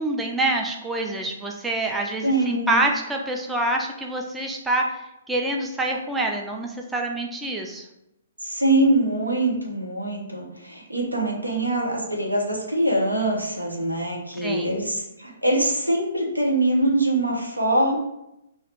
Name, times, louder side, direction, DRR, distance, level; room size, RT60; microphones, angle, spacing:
voice 1, 0.0-7.9 14.4-14.7, right 2 dB, 10° right, 1 dB, 0.4 m, -26 dB
voice 2, 2.2-2.9 8.4-18.0, right 1 dB, 90° right, -1 dB, 1.1 m, -23 dB
4.0 x 2.5 x 4.6 m, 0.87 s
figure-of-eight pair, 125°, 0 cm